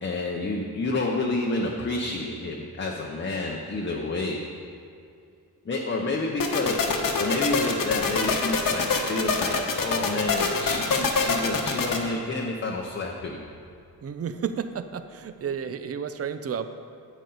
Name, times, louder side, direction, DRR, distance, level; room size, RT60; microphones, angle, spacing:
voice 1, 0.0-4.4 5.6-6.8 7.2-13.4, left 2 dB, 30° left, 0 dB, 0.7 m, -29 dB
sound 1, 6.4-12.0, left 4 dB, 60° left, 1.1 m, -25 dB
voice 2, 14.0-16.7, right 7 dB, 40° right, 11 dB, 0.5 m, -32 dB
11.0 x 8.1 x 3.9 m, 2.4 s
wide cardioid pair, 125°, 38 cm